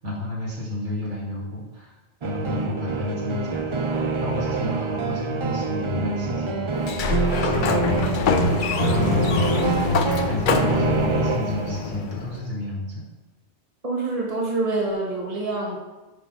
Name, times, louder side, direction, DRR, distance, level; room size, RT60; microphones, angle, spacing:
voice 1, 0.0-8.3 8.9-9.6 10.2-13.0, left 2 dB, 85° right, -5 dB, 2.5 m, -31 dB
sound 1, 2.2-12.0, right 5 dB, 50° right, 0.3 m, -26 dB
Sliding door, 6.8-12.5, left 5 dB, 55° left, 0.6 m, -24 dB
voice 2, 13.8-15.8, right 3 dB, 30° right, -2 dB, 1.5 m, -26 dB
6.4 x 4.9 x 5.3 m, 1.1 s
omnidirectional pair, 1.2 m